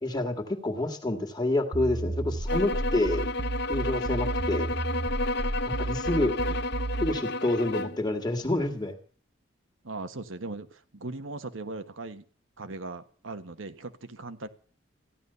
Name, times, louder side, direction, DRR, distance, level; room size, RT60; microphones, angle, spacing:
voice 1, 0.0-3.3 3.7-4.7 5.7-6.6 7.0-9.0, left 2 dB, 20° left, 6 dB, 1.9 m, -28 dB
sound 1, 1.7-7.2, right 2 dB, 40° right, 0.9 m, -32 dB
sound 2, 2.5-8.0, left 2 dB, 55° left, 0.7 m, -31 dB
voice 2, 9.8-12.2 12.6-14.5, right 2 dB, 90° right, 10 dB, 1.3 m, -39 dB
15.0 x 11.5 x 6.9 m, 0.43 s
head